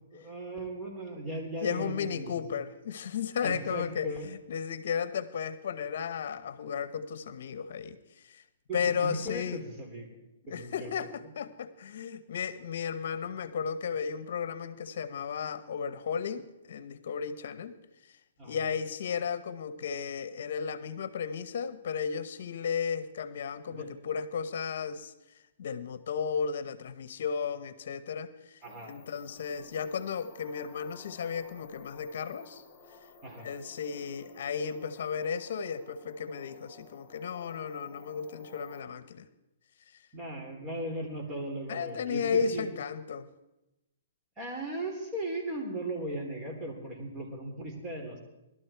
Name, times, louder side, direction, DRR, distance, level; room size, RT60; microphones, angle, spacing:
voice 1, 0.1-2.4 3.4-4.3 8.7-10.2 10.5-11.1 18.4-18.6 23.7-23.9 28.6-28.9 33.2-33.5 40.1-42.7 44.4-48.2, right 1 dB, 20° right, 0 dB, 3.9 m, -37 dB
voice 2, 1.6-8.0 8.3-8.4 8.7-9.6 10.5-17.7 18.4-25.1 25.6-28.3 28.9-32.6 33.4-39.3 41.7-43.3, left 6 dB, 65° left, 14 dB, 0.9 m, -34 dB
sound 1, 28.6-38.8, left 3 dB, 15° left, 3.2 m, -54 dB
19.5 x 12.5 x 4.6 m, 0.95 s
hypercardioid pair, 145°, 0 cm